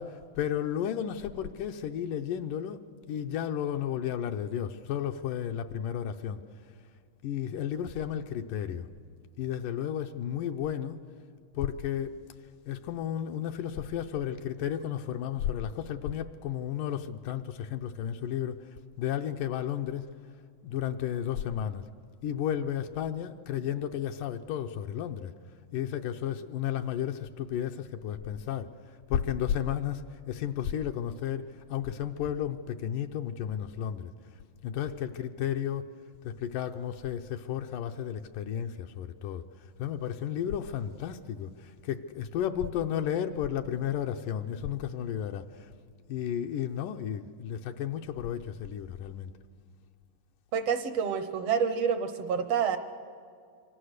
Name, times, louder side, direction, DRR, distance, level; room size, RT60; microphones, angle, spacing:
voice 1, 0.0-6.4 7.2-8.9 9.4-11.0 11.5-12.2 12.7-20.1 20.6-21.9 22.2-25.3 25.7-34.1 34.6-36.0 36.2-45.7 46.1-49.3, left 9 dB, 80° left, 2.3 m, -33 dB
voice 2, 50.5-52.8, right 7 dB, 70° right, 1.6 m, -28 dB
26.0 x 25.0 x 6.6 m
omnidirectional pair, 3.9 m